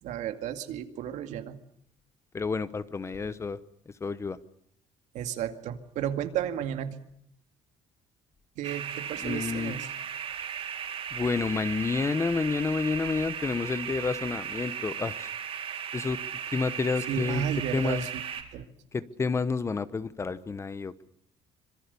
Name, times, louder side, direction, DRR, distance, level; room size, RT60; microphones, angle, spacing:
voice 1, 0.0-1.6 5.1-7.0 8.6-9.9 17.1-18.1 18.5-18.7, right 9 dB, 85° right, 8 dB, 2.2 m, -33 dB
voice 2, 2.3-3.6 4.0-4.4 9.2-9.7 11.1-15.3 15.9-16.2 16.5-17.4 17.7-18.1 18.9-21.1, left 4 dB, 20° left, 15 dB, 1.0 m, -29 dB
sound 1, 8.6-18.4, right 8 dB, 50° right, 4.1 m, -36 dB
25.5 x 22.5 x 6.9 m, 0.67 s
cardioid pair, 140°, 12 cm